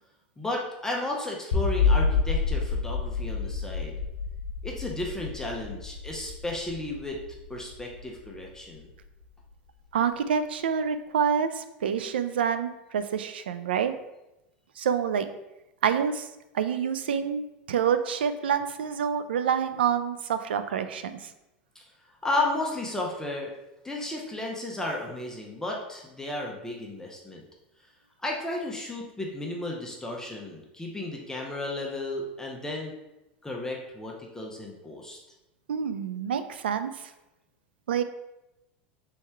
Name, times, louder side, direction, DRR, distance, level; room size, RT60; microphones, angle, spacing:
voice 1, 0.4-3.9 4.6-7.2 7.5-8.9 21.7-21.8 22.2-23.5 23.8-27.4 28.2-32.9 33.4-35.2, left 2 dB, 10° left, -1 dB, 0.7 m, -33 dB
sound 1, 1.5-8.7, left 5 dB, 80° left, 0.6 m, -28 dB
voice 2, 9.9-13.9 14.8-15.3 15.8-16.3 16.5-21.3 35.7-36.9 37.9-38.0, right 7 dB, 90° right, 10 dB, 0.3 m, -27 dB
3.4 x 3.1 x 4.4 m, 0.96 s
hypercardioid pair, 100°, 5 cm